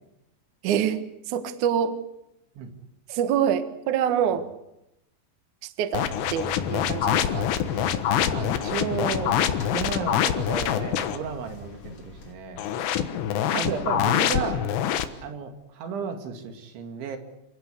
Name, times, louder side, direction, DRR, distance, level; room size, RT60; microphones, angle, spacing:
voice 1, 0.6-2.0 3.1-4.5 5.6-7.5 13.6-13.7, right 9 dB, 65° right, 10 dB, 2.1 m, -26 dB
sound 1, 5.9-11.2 12.6-15.1, left 10 dB, 75° left, 3.3 m, -25 dB
sound 2, 6.1-12.3, left 4 dB, 35° left, 3.1 m, -39 dB
voice 2, 8.3-12.6 13.5-14.7 15.2-17.2, right 6 dB, 80° right, 6 dB, 4.6 m, -33 dB
28.0 x 16.5 x 8.4 m, 0.86 s
omnidirectional pair, 5.3 m